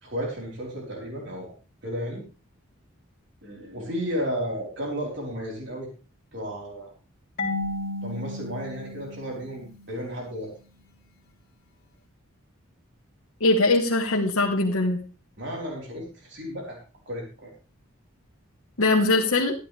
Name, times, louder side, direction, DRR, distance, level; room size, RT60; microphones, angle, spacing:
voice 1, 0.0-1.5 1.8-2.3 3.4-5.9 6.3-6.9 8.0-10.5 15.4-16.8 17.1-17.5, equal, 55° right, -1 dB, 4.3 m, -33 dB
Marimba xylophone / Wood, 7.4-10.1, left 2 dB, 45° left, 3.4 m, -33 dB
voice 2, 13.4-15.0 18.8-19.5, left 2 dB, 70° left, -1 dB, 1.4 m, -21 dB
12.5 x 11.5 x 3.4 m, 0.34 s
head